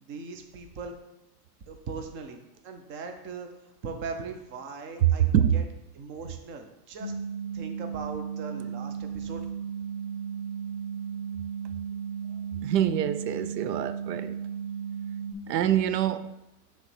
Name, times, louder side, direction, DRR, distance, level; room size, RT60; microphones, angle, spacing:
voice 1, 0.0-0.9 1.7-5.6 5.9-7.1 7.5-9.5, right 4 dB, 25° right, 0.6 m, -39 dB
sound 1, 7.0-15.3, right 7 dB, ahead, 1.0 m, -35 dB
voice 2, 12.6-14.3 15.5-16.3, right 10 dB, 90° right, 0.6 m, -25 dB
6.4 x 3.2 x 5.9 m
supercardioid pair, 145°, 47 cm